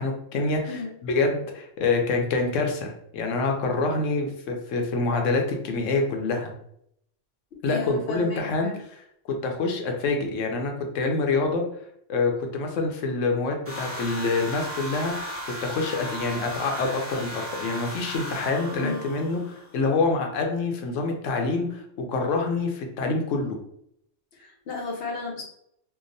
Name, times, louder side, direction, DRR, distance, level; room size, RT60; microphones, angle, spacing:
voice 1, 0.0-6.5 7.6-9.0 9.3-11.6 12.1-15.3 15.6-23.6, left 3 dB, 85° left, 3 dB, 0.9 m, -26 dB
voice 2, 7.7-8.8 18.7-19.1 24.3-25.4, left 3 dB, 55° left, -1 dB, 0.9 m, -34 dB
sound 1, 13.7-19.8, equal, 15° right, 0.6 m, -36 dB
2.8 x 2.0 x 2.6 m, 0.73 s
omnidirectional pair, 1.3 m